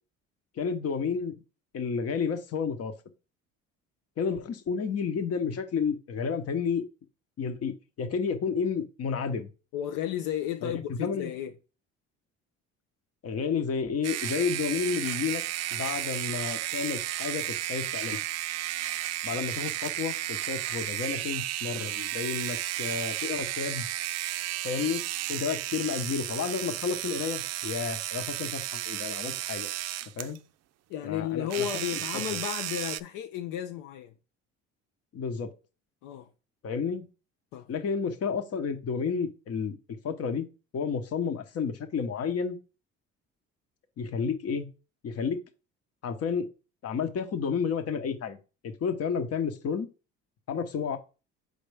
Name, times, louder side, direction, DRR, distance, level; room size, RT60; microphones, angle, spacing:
voice 1, 0.6-1.3 1.7-2.9 4.2-6.8 7.4-9.5 10.6-11.3 13.2-15.4 15.7-17.4 17.7-18.2 19.2-23.9 24.6-25.0 25.3-29.7 30.2-30.4 31.0-31.7 35.1-35.5 36.6-37.0 37.7-39.8 40.0-40.5 40.7-42.6 44.0-44.7 45.0-45.4 46.0-46.5 46.8-48.4 48.6-49.9 50.5-51.0, left 6 dB, 50° left, 1.0 m, -31 dB
voice 2, 9.7-11.5 19.3-19.4 30.9-34.1 36.0-36.3 37.5-37.7, left 11 dB, 80° left, 0.6 m, -33 dB
sound 1, 14.0-30.4 31.5-33.0, right 14 dB, 55° right, 0.4 m, -33 dB
6.6 x 4.3 x 3.4 m
supercardioid pair, 80°, 32 cm